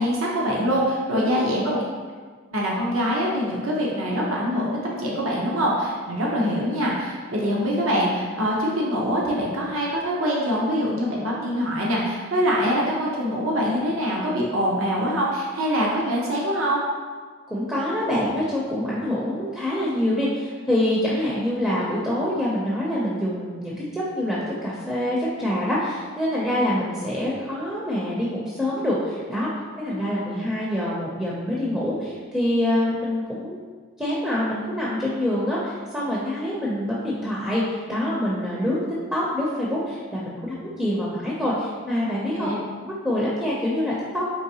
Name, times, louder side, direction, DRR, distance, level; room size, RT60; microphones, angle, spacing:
voice 1, 0.0-1.8 2.5-16.8 21.1-21.3 29.9-30.0 42.3-42.6, equal, 80° right, -3 dB, 0.7 m, -24 dB
voice 2, 1.1-1.6 17.5-29.5 29.8-33.6 34.0-38.8 39.1-42.5 42.8-44.3, left 1 dB, 5° right, -7 dB, 0.5 m, -26 dB
4.7 x 3.3 x 2.7 m, 1.5 s
head